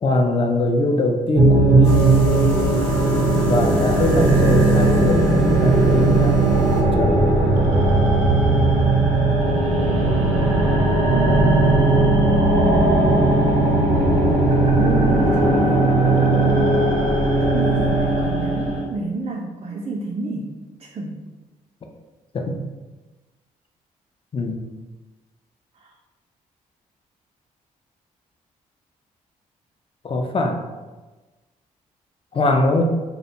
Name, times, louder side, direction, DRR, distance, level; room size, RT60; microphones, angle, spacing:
voice 1, 0.0-2.1 3.3-6.4 6.9-7.2 22.3-22.6 24.3-24.6 30.0-30.6 32.3-32.8, left 2 dB, 30° left, 3 dB, 0.5 m, -22 dB
sound 1, 1.4-18.8, right 2 dB, 80° right, 0.6 m, -17 dB
sound 2, 1.8-6.8, right 4 dB, 90° left, 0.5 m, -31 dB
voice 2, 9.7-10.1 11.1-11.7 14.7-16.0 17.4-20.5 20.8-21.2 25.8-25.9, right 2 dB, 35° right, 0 dB, 0.3 m, -30 dB
2.4 x 2.1 x 2.8 m, 1.2 s
hypercardioid pair, 45°, 17 cm